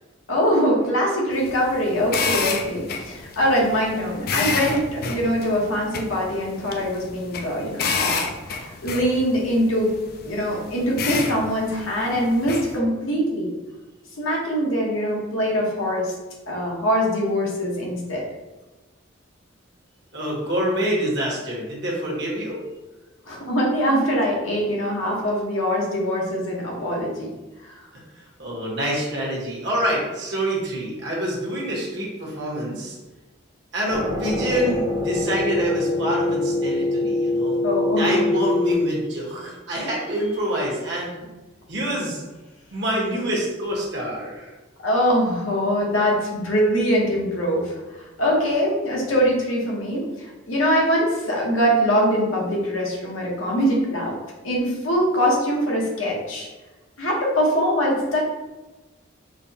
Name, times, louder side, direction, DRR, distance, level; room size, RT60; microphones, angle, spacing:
voice 1, 0.3-9.9 10.2-13.5 14.2-16.1 16.5-18.2 23.3-27.3 37.6-38.2 44.8-54.1 54.4-56.5 57.0-58.3, equal, 85° left, -3 dB, 1.0 m, -23 dB
sound 1, 1.3-12.8, left 5 dB, 50° left, 0.3 m, -30 dB
voice 2, 20.1-22.6 28.2-33.0 33.7-37.6 38.0-41.1 41.7-42.2 42.7-44.5, right 1 dB, 55° right, -3 dB, 1.1 m, -26 dB
sound 2, 33.9-38.7, left 2 dB, 25° right, 0.7 m, -24 dB
5.1 x 2.2 x 2.7 m, 1.1 s
head